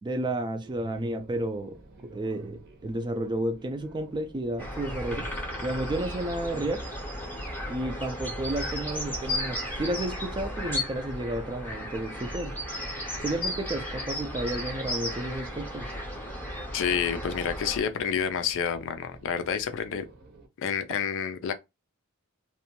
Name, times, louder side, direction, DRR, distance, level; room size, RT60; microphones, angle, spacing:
voice 1, 0.0-5.3 5.6-6.8 7.7-12.5 13.2-16.0, right 1 dB, 20° right, 0.3 m, -32 dB
sound 1, 0.6-20.5, right 2 dB, 50° right, 0.7 m, -52 dB
sound 2, 4.6-17.8, left 1 dB, 10° left, 0.7 m, -35 dB
voice 2, 16.7-20.0 20.6-21.5, left 7 dB, 60° left, 0.4 m, -29 dB
2.6 x 2.2 x 2.8 m
head